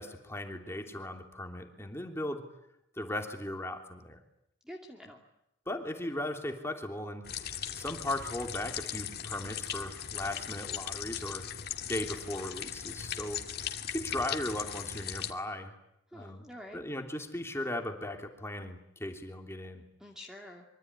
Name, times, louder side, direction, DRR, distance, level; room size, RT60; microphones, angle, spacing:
voice 1, 0.0-2.4 3.0-4.2 5.7-7.2 7.7-11.4 11.9-13.4 13.9-15.7 16.1-16.4 16.7-19.8, left 1 dB, 15° left, 3 dB, 3.1 m, -37 dB
voice 2, 4.6-5.2 16.1-16.9 20.0-20.7, left 1 dB, 5° right, 1 dB, 2.4 m, -47 dB
sound 1, 7.3-15.3, left 9 dB, 55° left, 2.2 m, -38 dB
25.0 x 24.0 x 9.8 m, 0.81 s
head